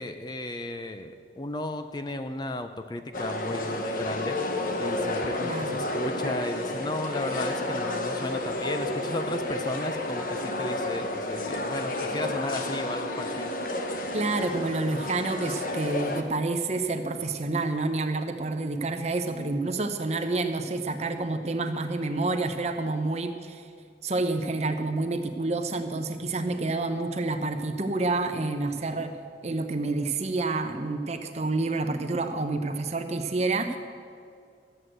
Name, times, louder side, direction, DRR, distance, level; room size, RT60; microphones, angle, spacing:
voice 1, 0.0-4.4 4.8-13.5, left 2 dB, 25° left, 9 dB, 0.5 m, -34 dB
sound 1, 3.1-16.2, left 1 dB, 50° left, 1.0 m, -31 dB
voice 2, 5.4-5.8 14.1-23.7 24.0-29.1 29.4-33.8, right 3 dB, 40° right, 7 dB, 0.8 m, -28 dB
13.5 x 7.8 x 7.8 m, 2.2 s
head